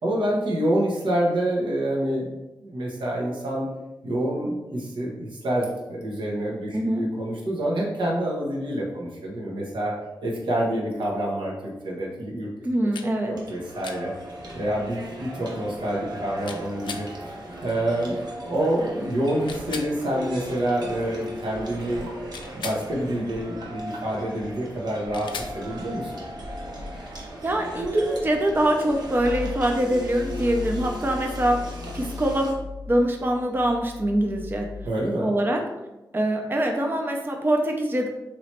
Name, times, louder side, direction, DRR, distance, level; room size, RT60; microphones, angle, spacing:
voice 1, 0.0-3.7 4.0-9.9 10.2-11.5 11.8-12.5 13.3-14.1 14.5-17.0 17.6-22.1 22.5-26.1 34.8-35.2, right 1 dB, 85° right, -3 dB, 1.1 m, -27 dB
voice 2, 6.7-7.0 12.6-13.4 27.4-31.6 31.9-32.5 32.9-34.7 35.2-35.6 36.1-38.1, right 1 dB, 25° right, 2 dB, 0.5 m, -24 dB
sound 1, 12.9-13.1 13.8-14.0 16.5-17.1 19.4-19.9 22.3-22.8 25.1-25.5, left 5 dB, 85° left, 0.4 m, -36 dB
sound 2, 13.1-32.5, equal, 60° right, 0.9 m, -38 dB
sound 3, 29.1-34.9, left 4 dB, 50° left, 0.8 m, -37 dB
3.0 x 3.0 x 4.3 m, 1.0 s
cardioid pair, 70°, 8 cm